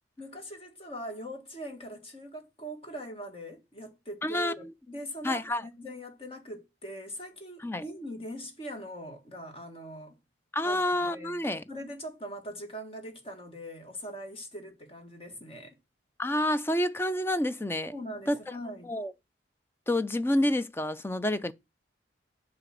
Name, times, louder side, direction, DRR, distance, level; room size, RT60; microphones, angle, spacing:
voice 1, 0.2-10.2 10.6-11.4 11.7-15.8 17.9-18.9, equal, 30° left, 1.8 m, -41 dB
voice 2, 4.2-4.7 5.2-5.6 7.6-7.8 10.5-11.6 16.2-17.9 18.3-18.4 18.8-19.1 19.9-21.5, left 1 dB, 10° left, 0.5 m, -28 dB
8.0 x 5.0 x 7.5 m
head